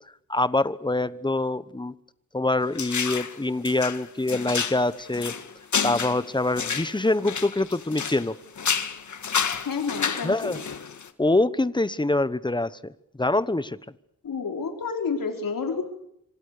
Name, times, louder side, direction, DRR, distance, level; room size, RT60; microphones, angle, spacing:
voice 1, 0.3-1.9 2.3-5.3 5.8-8.3 10.2-10.6 11.2-12.9 13.2-13.8, left 2 dB, 15° left, 15 dB, 1.1 m, -25 dB
sound 1, 2.8-3.4 3.7-8.3 8.6-11.1, left 6 dB, 60° left, 1.9 m, -30 dB
voice 2, 9.6-10.6 14.2-15.8, left 5 dB, 75° left, 4 dB, 4.8 m, -29 dB
26.5 x 26.0 x 6.8 m, 0.75 s
wide cardioid pair, 100°, 33 cm